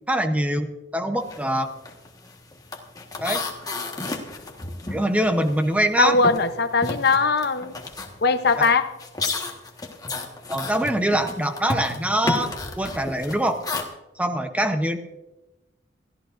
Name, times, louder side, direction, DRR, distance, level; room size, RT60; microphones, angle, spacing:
voice 1, 0.1-1.7 3.2-3.4 4.9-6.2 8.6-8.7 10.5-13.6 14.2-15.0, right 1 dB, 5° right, 6 dB, 0.8 m, -24 dB
sound 1, 1.2-1.5 1.8-5.8 6.1-13.8, left 2 dB, 20° left, 1.4 m, -32 dB
voice 2, 6.0-7.8 8.2-8.9, left 4 dB, 60° left, 10 dB, 0.8 m, -20 dB
23.0 x 14.0 x 2.6 m, 1.0 s
head